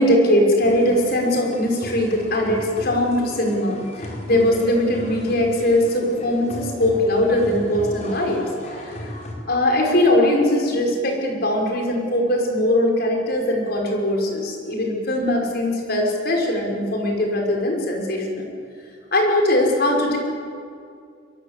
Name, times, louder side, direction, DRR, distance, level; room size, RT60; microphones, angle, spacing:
voice 1, 0.0-9.1 9.5-18.5 19.1-20.2, left 1 dB, 55° left, 1 dB, 5.7 m, -21 dB
sound 1, 0.6-9.3, equal, 35° left, 4.8 m, -35 dB
24.0 x 23.0 x 8.4 m, 2.3 s
head